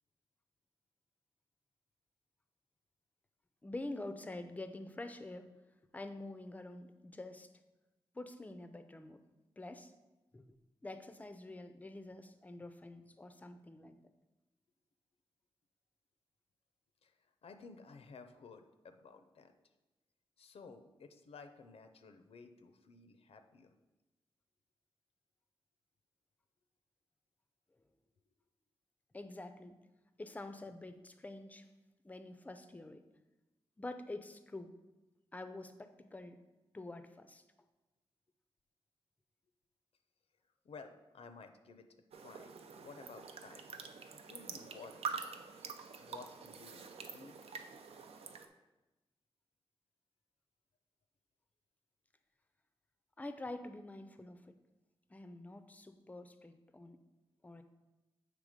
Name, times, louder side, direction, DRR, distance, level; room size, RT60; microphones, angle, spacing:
voice 1, 3.6-5.5 5.9-7.5 8.1-9.2 9.6-9.9 10.3-10.6 10.8-14.0 29.1-29.8 30.2-31.7 32.0-33.0 33.8-34.7 35.3-36.4 36.7-37.4 46.3-46.4 53.2-54.6 55.1-57.0 57.4-57.6, left 2 dB, 15° left, 9 dB, 0.4 m, -47 dB
voice 2, 17.0-19.5 20.4-23.7 40.6-41.9 42.2-43.7 44.1-45.2 46.0-47.4, left 4 dB, 80° left, 8 dB, 0.5 m, -55 dB
sound 1, 42.1-48.5, right 5 dB, 85° right, 0.5 m, -46 dB
7.6 x 3.4 x 5.0 m, 1.1 s
wide cardioid pair, 140°, 10 cm